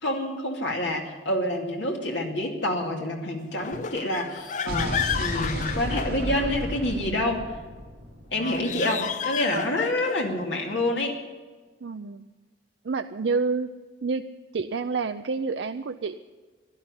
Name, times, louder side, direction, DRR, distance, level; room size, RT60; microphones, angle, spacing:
voice 1, 0.0-7.4 8.3-11.2, left 1 dB, 80° left, 1 dB, 2.5 m, -27 dB
sound 1, 3.6-6.7 8.3-10.3, left 7 dB, 40° left, 0.4 m, -32 dB
Explosion, 4.7-8.7, equal, 55° right, 2.8 m, -33 dB
voice 2, 11.8-12.2 12.8-13.7 14.0-14.2 14.5-16.2, right 4 dB, 70° right, 7 dB, 0.5 m, -28 dB
11.5 x 11.5 x 9.8 m, 1.4 s
head